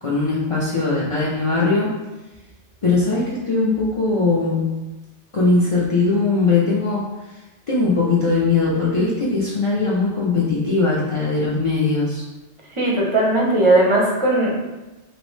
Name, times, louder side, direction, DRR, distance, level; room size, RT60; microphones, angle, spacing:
voice 1, 0.0-2.0 2.8-4.7 5.3-7.0 7.7-12.2, left 3 dB, 60° left, -6 dB, 0.3 m, -20 dB
voice 2, 12.7-14.5, right 2 dB, 35° right, -3 dB, 0.5 m, -17 dB
3.8 x 2.0 x 3.1 m, 1.1 s
omnidirectional pair, 1.2 m